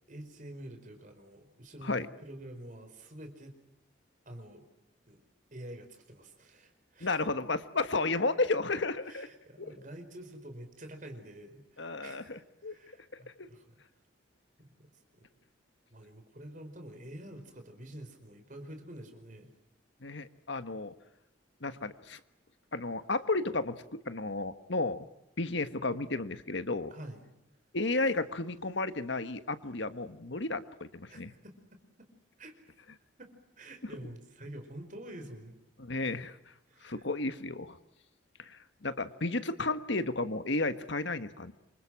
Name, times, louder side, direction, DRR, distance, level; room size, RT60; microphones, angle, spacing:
voice 1, 0.1-3.6 4.2-4.6 5.1-5.2 5.5-7.2 9.0-13.8 14.6-15.2 15.9-19.5 26.9-27.2 31.1-32.1 32.4-32.6 33.2-35.6 36.7-37.0, right 1 dB, 40° right, 6 dB, 4.8 m, -48 dB
voice 2, 7.0-9.3 9.6-9.7 11.8-12.7 13.4-13.5 20.0-20.9 21.6-22.2 22.7-25.0 25.4-26.9 27.7-31.3 35.8-36.4 36.8-37.8 38.4-41.5, left 3 dB, 65° left, 11 dB, 1.5 m, -33 dB
28.0 x 25.5 x 7.6 m, 0.89 s
head